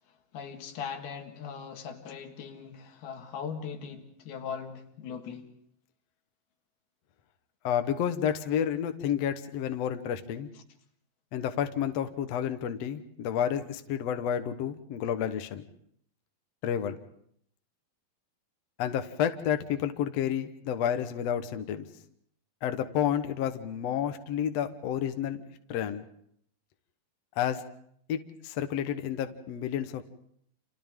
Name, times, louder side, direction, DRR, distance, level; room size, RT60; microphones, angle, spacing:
voice 1, 0.3-5.5, left 6 dB, 80° left, 4 dB, 3.7 m, -39 dB
voice 2, 7.6-10.5 11.3-15.7 16.6-17.0 18.8-21.9 22.6-25.4 25.7-26.1 27.4-27.6 28.1-30.1, left 9 dB, 65° left, 8 dB, 1.7 m, -30 dB
30.0 x 27.5 x 3.7 m, 0.67 s
omnidirectional pair, 4.3 m